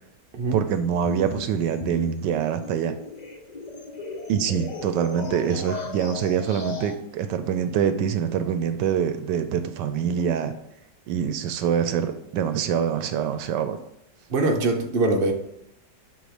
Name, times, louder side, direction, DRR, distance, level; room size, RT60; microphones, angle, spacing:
voice 1, 0.5-2.9 4.3-10.5 11.1-13.8, right 8 dB, 80° right, 9 dB, 1.2 m, -25 dB
sound 1, 0.7-7.0, left 3 dB, 80° left, 0.3 m, -37 dB
voice 2, 14.3-15.3, right 2 dB, 45° right, 3 dB, 0.8 m, -22 dB
7.7 x 3.1 x 4.9 m, 0.79 s
omnidirectional pair, 1.9 m